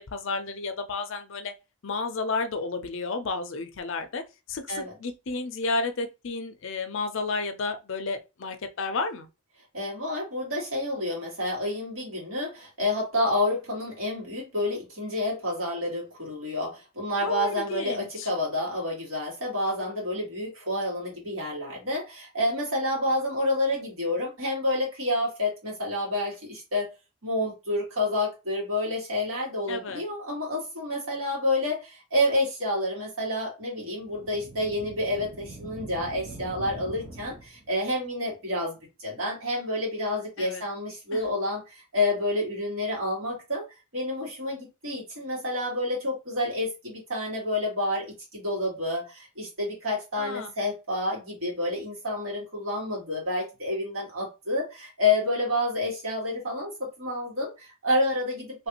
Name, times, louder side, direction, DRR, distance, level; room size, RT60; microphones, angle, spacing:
voice 1, 0.0-1.5 1.8-4.2 4.5-9.3 17.2-18.3 29.7-30.0 40.4-40.6 41.1-41.2 50.2-50.5, left 3 dB, 65° left, 0.6 m, -32 dB
voice 2, 9.7-26.9 27.2-43.6 43.9-48.1 48.3-58.7, left 1 dB, 80° right, 2.0 m, -29 dB
sound 1, 34.0-37.8, right 2 dB, 60° right, 0.8 m, -43 dB
3.1 x 2.5 x 2.9 m
head